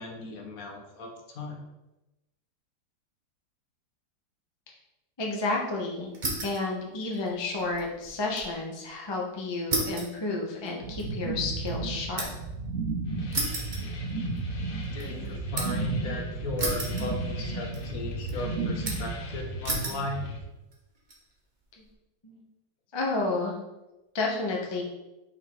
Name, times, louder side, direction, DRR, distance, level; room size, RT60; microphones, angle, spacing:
voice 1, 0.0-1.6 14.9-20.2, left 2 dB, 60° left, 2 dB, 1.1 m, -36 dB
voice 2, 5.2-6.1 6.4-12.3 22.2-22.4 22.9-23.6 24.1-24.8, left 3 dB, 30° left, -1 dB, 0.4 m, -31 dB
sound 1, 6.1-6.7 7.0-8.5 8.9-9.0 9.7-12.5 13.3-14.5 14.8-15.9 16.6-17.5 17.7-18.3 18.9-19.2 19.6-20.1 20.7-21.2, right 2 dB, 30° right, 1.0 m, -33 dB
sound 2, 10.8-19.4, right 3 dB, 65° right, 0.6 m, -33 dB
sound 3, 13.0-20.4, left 1 dB, 80° left, 1.6 m, -41 dB
5.6 x 3.6 x 4.7 m, 0.99 s
omnidirectional pair, 2.0 m